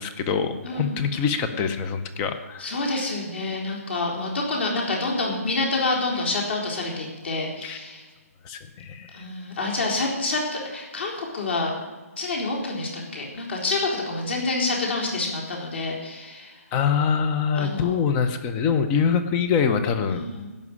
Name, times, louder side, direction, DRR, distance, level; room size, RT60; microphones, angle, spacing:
voice 1, 0.0-2.8 7.6-7.8 8.4-9.2 16.7-20.2, left 6 dB, 10° left, 9 dB, 0.6 m, -24 dB
voice 2, 0.6-1.0 2.6-8.0 9.1-11.7 12.2-16.6 17.5-18.0 20.1-20.5, left 2 dB, 45° left, -1 dB, 4.1 m, -27 dB
16.0 x 6.2 x 9.7 m, 1.3 s
hypercardioid pair, 175°, 8 cm